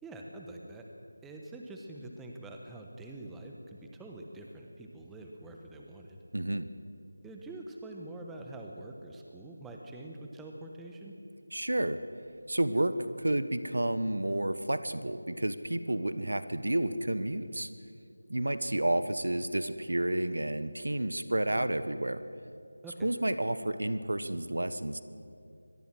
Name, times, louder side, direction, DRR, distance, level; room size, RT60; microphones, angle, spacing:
voice 1, 0.0-0.8 1.2-6.2 7.2-11.1 22.8-23.1, right 2 dB, 5° right, 1 dB, 1.2 m, -45 dB
voice 2, 6.3-6.7 11.5-12.0 12.5-17.7 18.3-22.2 23.0-25.0, right 1 dB, 75° right, 12 dB, 1.3 m, -30 dB
24.5 x 18.0 x 6.3 m, 2.5 s
figure-of-eight pair, 165°, 0 cm